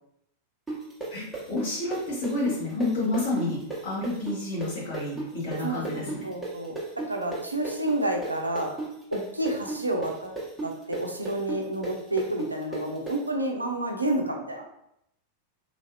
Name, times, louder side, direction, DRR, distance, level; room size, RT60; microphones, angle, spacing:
sound 1, 0.7-8.3 8.6-13.2, right 3 dB, 5° right, 1.0 m, -34 dB
voice 1, 1.1-6.3, left 2 dB, 55° left, -6 dB, 1.4 m, -30 dB
voice 2, 5.6-8.8 9.1-14.7, right 1 dB, 85° right, 2 dB, 0.5 m, -30 dB
3.1 x 2.6 x 2.5 m, 0.76 s
figure-of-eight pair, 90°, 0 cm